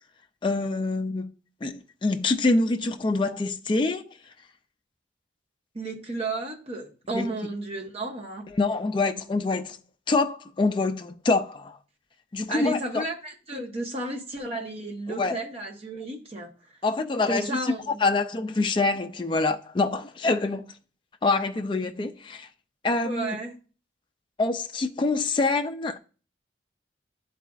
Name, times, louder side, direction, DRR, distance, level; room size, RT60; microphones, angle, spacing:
voice 1, 0.4-1.3 1.6-4.1 7.1-7.3 8.5-9.8 10.1-11.8 12.3-13.0 15.2-15.4 16.8-17.6 17.9-20.7 21.2-22.5 22.8-23.4 24.4-26.0, left 3 dB, 25° left, 0.4 m, -25 dB
voice 2, 5.7-8.5 12.5-16.5 17.3-18.0 23.0-23.6, right 2 dB, 30° right, 1.0 m, -33 dB
10.0 x 4.1 x 2.4 m
head